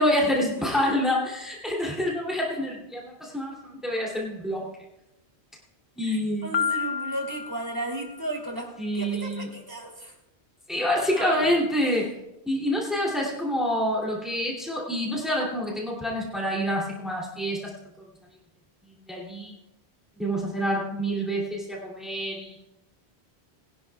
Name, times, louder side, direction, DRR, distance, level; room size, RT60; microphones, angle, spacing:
voice 1, 0.0-4.7 6.0-6.5 8.8-9.5 10.7-12.1 12.5-17.7 19.1-19.5 20.2-22.6, equal, ahead, -4 dB, 2.7 m, -27 dB
voice 2, 6.0-10.1 11.1-11.6, right 2 dB, 20° right, 0 dB, 2.9 m, -35 dB
Piano, 6.5-8.4, left 7 dB, 65° left, 0.7 m, -31 dB
21.0 x 12.0 x 2.3 m, 0.91 s
omnidirectional pair, 1.1 m